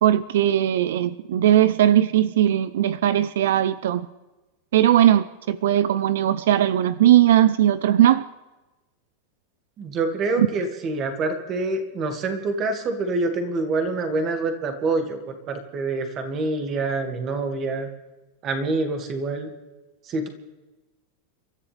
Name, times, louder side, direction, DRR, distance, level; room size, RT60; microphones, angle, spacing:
voice 1, 0.0-4.1 4.7-8.2 10.4-10.5, right 12 dB, 75° right, 15 dB, 0.7 m, -19 dB
voice 2, 9.8-17.9 18.4-19.5 20.1-20.3, right 3 dB, 25° right, 5 dB, 2.2 m, -26 dB
30.0 x 14.0 x 3.5 m, 1.1 s
supercardioid pair, 175°, 0 cm